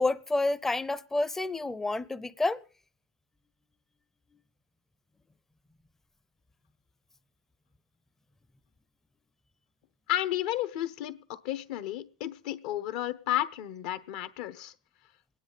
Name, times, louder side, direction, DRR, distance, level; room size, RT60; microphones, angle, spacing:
voice 1, 0.0-2.6, left 2 dB, 10° left, 0.6 m, -29 dB
voice 2, 10.1-14.7, left 13 dB, 65° left, 1.0 m, -32 dB
25.0 x 10.0 x 4.0 m
hypercardioid pair, 115°, 4 cm